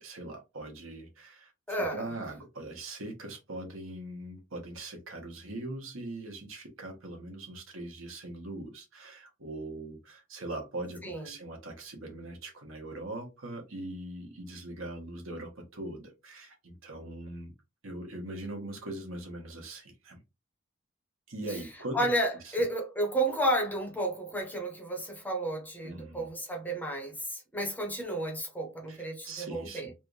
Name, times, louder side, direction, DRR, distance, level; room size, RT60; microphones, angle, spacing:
voice 1, 0.0-17.5 17.8-20.2 21.3-22.1 22.4-22.6 25.8-26.3 28.9-29.9, right 2 dB, 70° right, 1.2 m, -41 dB
voice 2, 1.7-2.1 11.0-11.3 21.5-21.6 21.9-29.9, right 1 dB, 10° left, 0.8 m, -32 dB
3.3 x 2.5 x 3.1 m
head